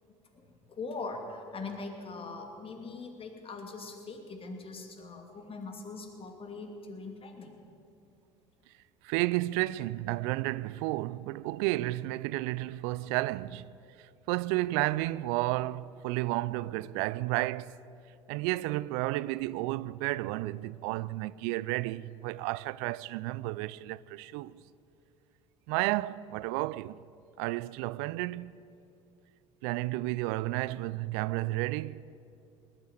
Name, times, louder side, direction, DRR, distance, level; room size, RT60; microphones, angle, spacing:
voice 1, 0.3-7.6, left 3 dB, 35° left, 2.6 m, -41 dB
voice 2, 9.0-13.7 14.0-17.8 18.3-24.6 25.7-27.0 27.4-28.5 29.6-32.0, right 18 dB, 65° right, 0.4 m, -32 dB
19.5 x 8.6 x 8.3 m
hypercardioid pair, 70°, 16 cm